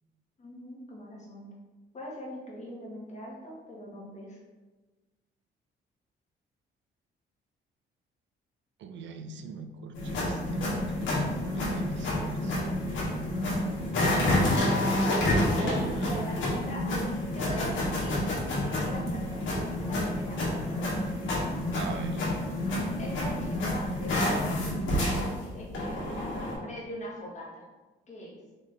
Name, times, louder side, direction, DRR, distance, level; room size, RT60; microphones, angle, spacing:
voice 1, 0.4-1.5 1.9-4.4 13.7-14.3 15.5-16.4 16.6-19.4 19.8-20.4 20.7-21.0 23.0-24.7 25.5-27.6 28.1-28.4, left 1 dB, 35° left, -3 dB, 1.5 m, -42 dB
voice 2, 8.8-12.5 15.6-16.4 21.7-22.3, right 4 dB, 70° right, 8 dB, 0.4 m, -40 dB
sound 1, 9.9-26.5, left 1 dB, 70° left, 1.5 m, -29 dB
4.3 x 2.9 x 3.7 m, 1.2 s
cardioid pair, 90°, 20 cm